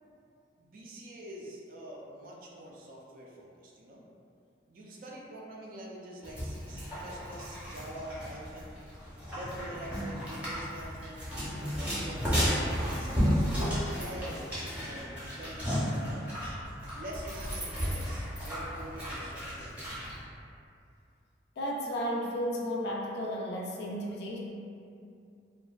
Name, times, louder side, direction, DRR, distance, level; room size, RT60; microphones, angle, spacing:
voice 1, 0.6-4.0 4.7-8.8 9.3-12.5 12.9-16.6 16.9-20.1, right 1 dB, 50° right, -3 dB, 0.3 m, -45 dB
sound 1, 6.2-20.2, equal, 10° right, 0.6 m, -33 dB
voice 2, 21.6-24.4, equal, 60° left, -2 dB, 0.3 m, -33 dB
2.5 x 2.2 x 2.3 m, 2.5 s
head